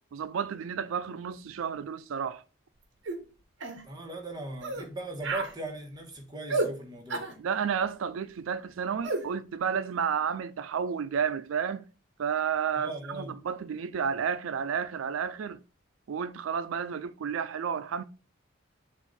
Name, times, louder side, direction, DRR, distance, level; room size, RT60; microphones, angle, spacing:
voice 1, 0.1-2.4 7.4-11.8 12.2-15.6 16.1-18.0, right 7 dB, 90° right, 0.4 m, -31 dB
sound 1, 3.1-3.2 3.6-3.8 4.6-4.9 5.2-5.5 6.5-6.7 7.1-7.3 9.0-9.2, right 3 dB, 60° right, 0.9 m, -31 dB
voice 2, 3.8-7.4 12.7-13.4, right 2 dB, 20° right, 1.3 m, -39 dB
7.1 x 2.5 x 5.4 m
head